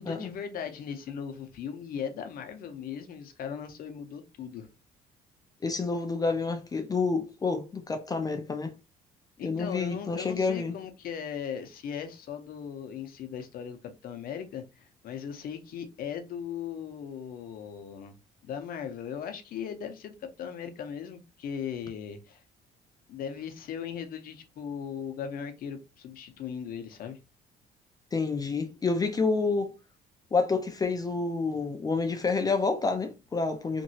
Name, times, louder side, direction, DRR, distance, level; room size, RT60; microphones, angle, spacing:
voice 1, 0.0-4.7 9.4-18.2 18.4-22.4 23.1-27.2, left 7 dB, 60° left, 0.7 m, -38 dB
voice 2, 5.6-8.7 9.4-10.7 28.1-29.7 30.3-33.8, left 4 dB, 20° left, 0.5 m, -28 dB
3.0 x 2.6 x 2.7 m
cardioid pair, 110°, 17 cm